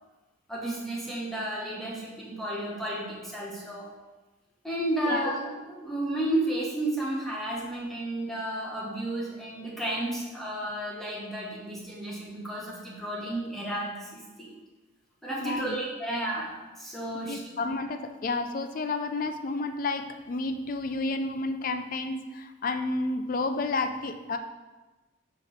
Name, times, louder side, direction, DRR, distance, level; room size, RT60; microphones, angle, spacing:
voice 1, 0.5-3.9 4.6-14.6 15.2-17.4, right 1 dB, ahead, -4 dB, 1.1 m, -32 dB
voice 2, 15.4-15.8 17.3-24.4, left 3 dB, 45° left, 7 dB, 0.4 m, -31 dB
6.7 x 2.9 x 5.7 m, 1.2 s
head